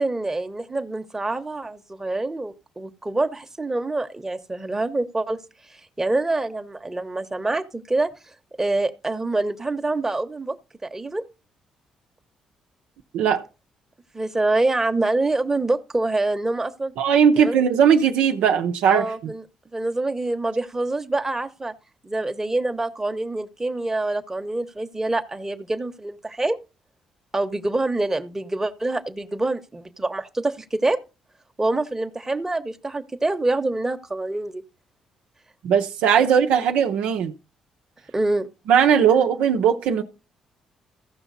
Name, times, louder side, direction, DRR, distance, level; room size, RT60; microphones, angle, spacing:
voice 1, 0.0-5.4 5.7-8.1 8.6-10.6 10.8-11.2 14.1-16.9 17.4-17.6 18.8-19.4 19.7-21.7 22.0-26.6 27.3-31.0 31.6-34.6 36.1-36.3 38.1-38.5 39.2-39.3, right 2 dB, 20° right, 1.0 m, -26 dB
voice 2, 17.0-19.3 35.6-37.3 38.7-40.0, right 7 dB, 80° right, 0.7 m, -18 dB
15.0 x 5.8 x 4.0 m
supercardioid pair, 60°, 2 cm